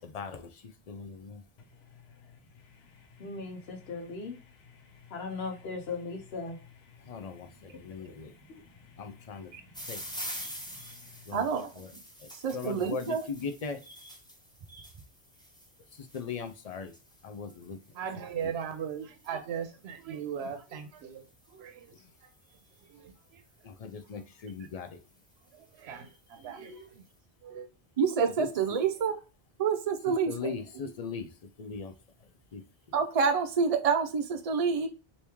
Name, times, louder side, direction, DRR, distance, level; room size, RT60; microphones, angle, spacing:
voice 1, 0.0-1.4 7.0-8.3 9.0-9.5 9.9-10.0 11.3-11.9 12.2-13.8 15.9-16.9 17.2-17.8 18.4-18.5 21.9-22.1 23.6-25.0 28.4-28.8 30.1-31.9 32.5-32.6, left 5 dB, 50° left, 0.5 m, -40 dB
voice 2, 1.6-11.3, left 4 dB, 75° left, 1.0 m, -43 dB
sound 1, 9.7-22.9 23.8-24.2 24.8-24.9 25.1-25.2 25.5-26.8, equal, 5° left, 0.7 m, -47 dB
voice 3, 11.3-11.9 12.4-13.3 28.0-29.2 29.6-30.5 32.9-34.9, right 6 dB, 45° right, 0.5 m, -27 dB
voice 4, 17.9-21.9 22.2-22.3 22.8-23.4 25.5-27.0 27.4-27.7, right 7 dB, 90° right, 0.8 m, -39 dB
3.0 x 2.7 x 3.4 m
omnidirectional pair, 1.1 m